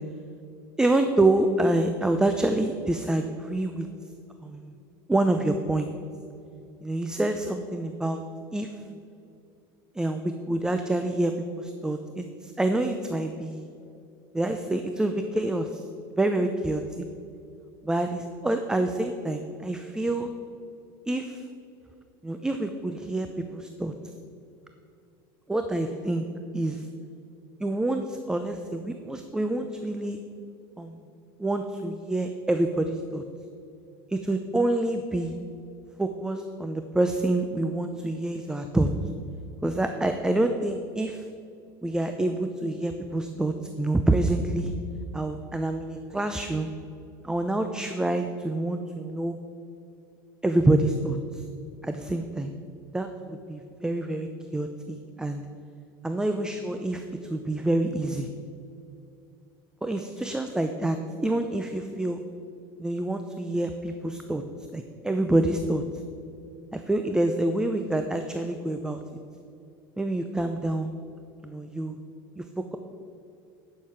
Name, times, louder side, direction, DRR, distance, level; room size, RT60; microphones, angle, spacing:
voice 1, 0.8-3.9 4.4-4.8 5.1-5.9 6.8-8.2 8.5-8.7 9.9-13.7 14.3-15.8 16.2-17.1 17.8-20.3 21.1-21.4 22.2-23.9 25.5-26.3 26.5-26.9 27.6-30.2 30.8-31.0 31.4-33.2 34.1-35.4 36.0-38.9 39.6-41.3 41.8-44.7 45.1-46.7 47.2-49.4 50.4-51.4 51.8-52.5 52.9-55.4 56.0-58.3 59.8-61.0 61.2-62.2 62.8-64.4 64.7-65.8 66.7-69.0 70.0-70.9 71.4-72.0 72.4-72.8, right 2 dB, 5° right, 7 dB, 0.5 m, -27 dB
10.5 x 6.6 x 5.8 m, 2.6 s
supercardioid pair, 120°, 11 cm